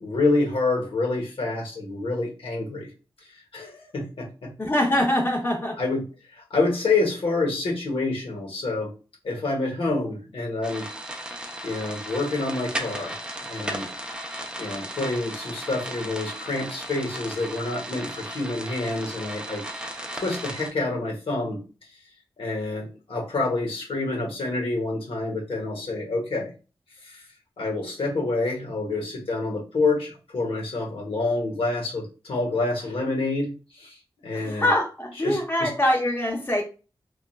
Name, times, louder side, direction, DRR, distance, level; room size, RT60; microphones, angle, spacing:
voice 1, 0.0-2.9 3.5-4.5 5.8-6.0 6.3-8.9 9.2-10.9 11.6-13.2 13.5-13.8 14.6-19.6 20.1-21.6 22.4-26.5 27.0-27.2 27.6-33.5 33.8-34.0 34.2-34.7 35.2-35.7, left 3 dB, 70° left, -1 dB, 1.0 m, -27 dB
voice 2, 4.6-5.8 34.3-36.6, left 1 dB, 25° left, 1 dB, 0.7 m, -24 dB
sound 1, 10.6-20.7, right 1 dB, 10° right, 0.5 m, -35 dB
2.9 x 2.3 x 2.2 m, 0.33 s
cardioid pair, 55°, 10 cm